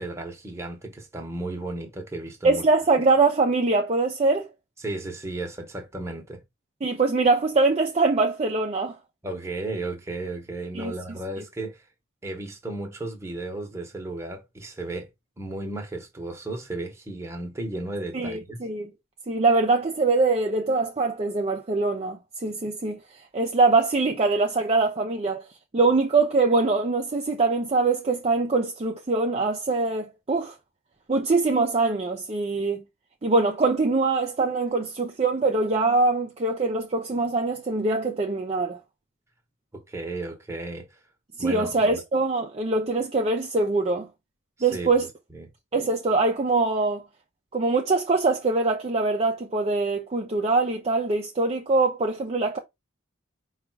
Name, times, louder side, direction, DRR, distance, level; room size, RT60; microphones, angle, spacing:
voice 1, 0.0-2.6 4.8-6.4 9.2-11.8 12.2-15.1 15.4-18.6 39.7-41.0 41.4-42.0 44.6-44.9 45.3-45.5, right 2 dB, 15° right, 1.0 m, -34 dB
voice 2, 2.4-4.5 6.8-9.0 10.7-10.9 18.1-18.9 19.3-23.0 23.3-25.4 25.7-30.6 31.1-32.8 33.2-38.8 41.4-44.1 44.6-45.1 45.7-47.0 47.5-52.6, right 3 dB, 30° right, 0.5 m, -23 dB
4.9 x 2.4 x 4.4 m
head